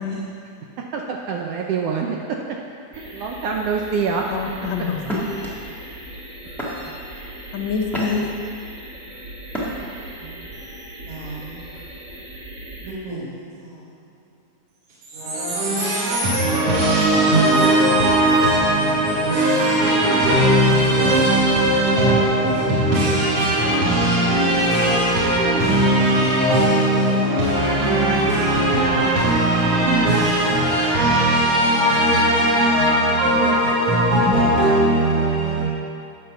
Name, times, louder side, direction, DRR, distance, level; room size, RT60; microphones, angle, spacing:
voice 1, 0.9-2.2 3.1-4.5 6.9-7.0 10.2-10.4, right 5 dB, 75° right, 1.4 m, -25 dB
sound 1, 2.9-12.9, right 1 dB, 25° right, 2.1 m, -39 dB
sound 2, 4.2-4.5 5.0-5.5 6.1-6.3 6.6-7.1 7.6-8.4 9.5-10.0, equal, ahead, 0.7 m, -29 dB
voice 2, 4.3-5.4 7.5-8.6, left 5 dB, 75° left, 1.0 m, -26 dB
voice 3, 11.1-11.6 12.8-13.8 15.1-35.6, right 1 dB, 60° right, 2.1 m, -18 dB
9.5 x 5.7 x 6.8 m
omnidirectional pair, 3.3 m